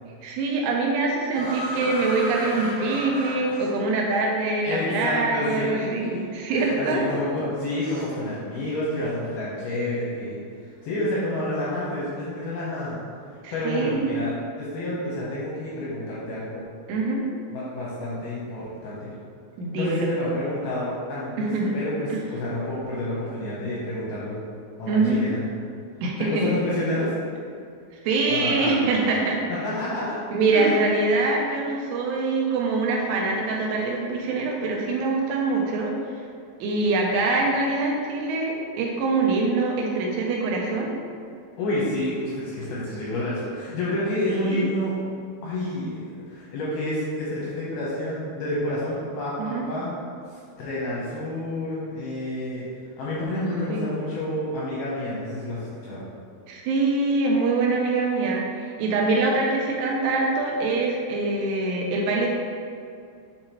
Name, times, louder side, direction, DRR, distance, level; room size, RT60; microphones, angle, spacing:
voice 1, 0.2-7.1 13.4-14.2 16.9-17.2 19.6-20.1 21.4-21.8 22.1-22.2 24.9-25.2 26.0-26.4 28.0-29.4 30.3-35.9 36.6-40.9 44.3-44.6 49.4-49.7 53.7-53.8 56.5-62.3, right 3 dB, 85° right, -1 dB, 2.5 m, -24 dB
sound 1, 1.3-4.1 5.2-5.3 6.5-8.3 8.6-9.0, equal, 70° right, 2.2 m, -34 dB
voice 2, 4.6-6.2 6.5-10.4 10.8-13.0 13.5-16.6 17.5-19.1 19.7-24.4 24.8-25.4 26.2-27.1 28.3-29.1 29.6-30.2 30.5-30.8 41.6-45.0 45.4-50.0 50.3-52.7 53.0-56.0, left 1 dB, 80° left, -7 dB, 2.2 m, -29 dB
7.3 x 4.6 x 3.0 m, 2.3 s
omnidirectional pair, 5.7 m